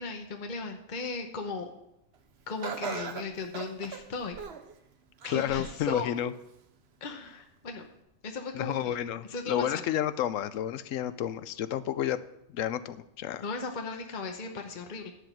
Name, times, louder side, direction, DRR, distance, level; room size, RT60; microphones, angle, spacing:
voice 1, 0.0-1.7 2.5-4.4 5.3-6.1 7.0-7.9 8.2-8.9 9.3-9.6 13.4-15.1, left 3 dB, 40° left, 4 dB, 1.0 m, -36 dB
Laughter, 2.6-4.7 5.2-5.8 6.3-6.4 7.4-7.5, right 6 dB, 60° right, 1.1 m, -39 dB
voice 2, 5.3-6.3 8.5-12.2 12.5-13.4, left 11 dB, 80° left, 14 dB, 1.0 m, -31 dB
11.5 x 5.1 x 7.7 m, 0.82 s
omnidirectional pair, 1.3 m